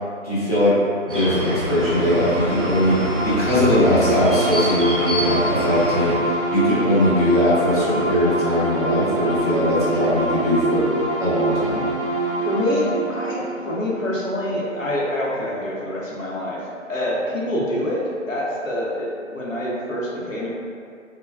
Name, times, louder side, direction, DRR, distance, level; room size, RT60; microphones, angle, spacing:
voice 1, 0.2-0.8 1.1-3.0 3.2-10.9 11.2-11.8, left 1 dB, 30° left, -11 dB, 0.7 m, -20 dB
sound 1, 1.1-6.1, right 1 dB, 45° right, 0.5 m, -26 dB
sound 2, 1.7-15.2, right 2 dB, 85° right, 0.6 m, -26 dB
voice 2, 12.4-16.6 16.9-18.0 18.3-20.5, left 1 dB, 75° left, -5 dB, 0.8 m, -26 dB
3.4 x 2.2 x 2.3 m, 2.3 s
figure-of-eight pair, 150°, 40 cm